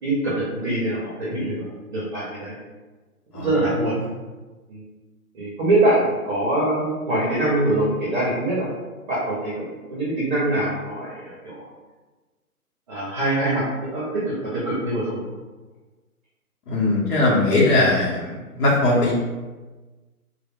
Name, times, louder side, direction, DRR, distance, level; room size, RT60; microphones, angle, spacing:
voice 1, 0.0-2.6 3.3-3.9 4.7-4.8 5.3-8.7 9.1-11.6 12.9-15.2, right 1 dB, 35° right, -7 dB, 0.6 m, -24 dB
voice 2, 16.7-19.1, left 2 dB, 75° left, -5 dB, 0.9 m, -20 dB
2.1 x 2.0 x 3.4 m, 1.2 s
hypercardioid pair, 150°, 46 cm